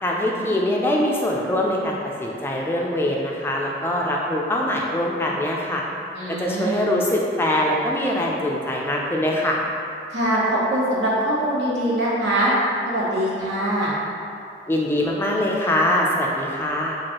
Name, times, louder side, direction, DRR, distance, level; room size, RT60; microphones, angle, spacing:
voice 1, 0.0-5.9 6.4-9.6 14.7-17.0, left 1 dB, 15° left, -2 dB, 0.3 m, -23 dB
voice 2, 6.1-6.9 10.1-12.5 12.9-13.9, right 1 dB, 90° right, -8 dB, 1.0 m, -23 dB
4.5 x 2.4 x 2.9 m, 2.5 s
head